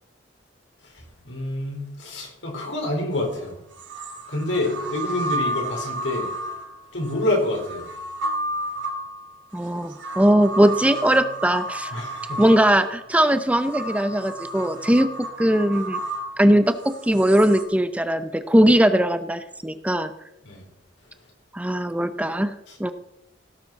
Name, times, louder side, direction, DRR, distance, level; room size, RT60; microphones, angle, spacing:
voice 1, 0.8-3.6 4.3-6.3 6.9-7.9 11.9-12.4 20.5-20.6 22.7-22.8, left 1 dB, 80° left, 0 dB, 4.2 m, -27 dB
sound 1, 3.1-3.2 3.8-17.6, right 1 dB, 80° right, 2.2 m, -32 dB
voice 2, 9.5-11.9 12.4-15.1 15.4-16.0 16.4-20.1 21.5-22.9, right 1 dB, 5° right, 10 dB, 0.6 m, -20 dB
17.0 x 6.7 x 5.8 m, 0.86 s
head